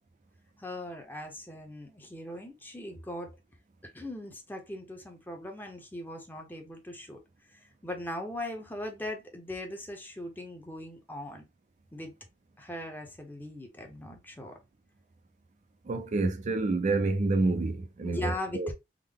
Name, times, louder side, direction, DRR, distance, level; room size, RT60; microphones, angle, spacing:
voice 1, 0.6-3.4 3.9-7.2 7.5-11.4 11.9-12.1 12.6-14.6 18.0-18.7, left 1 dB, 10° left, 0.7 m, -39 dB
voice 2, 15.9-18.7, right 3 dB, 40° right, 0.4 m, -28 dB
3.7 x 2.1 x 3.4 m
head